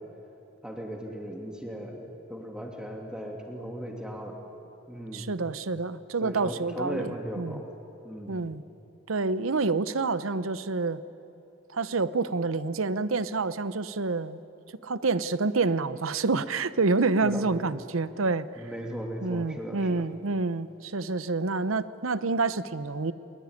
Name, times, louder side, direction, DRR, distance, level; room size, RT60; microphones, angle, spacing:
voice 1, 0.6-2.0 2.3-4.4 4.9-5.3 6.2-7.7 8.0-8.4 17.2-17.4 18.6-20.1, equal, 5° right, 1 dB, 2.8 m, -37 dB
voice 2, 5.1-7.6 8.3-8.6 9.1-11.0 11.7-14.4 14.8-18.5 19.2-23.1, right 3 dB, 90° right, 15 dB, 0.8 m, -28 dB
22.5 x 22.0 x 9.7 m, 2.9 s
head